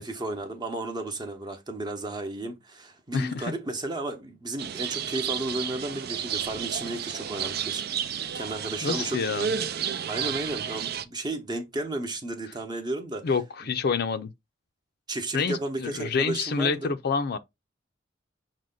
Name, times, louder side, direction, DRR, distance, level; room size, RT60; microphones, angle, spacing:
voice 1, 0.0-8.0 8.3-9.2 10.1-13.3 13.6-13.7 15.1-17.0, right 2 dB, 20° right, 0.8 m, -33 dB
voice 2, 3.1-3.5 8.8-9.5 13.2-14.3 15.3-17.4, left 5 dB, 50° left, 0.5 m, -27 dB
sound 1, 4.6-11.1, right 8 dB, 50° right, 0.4 m, -32 dB
6.2 x 2.2 x 3.8 m
head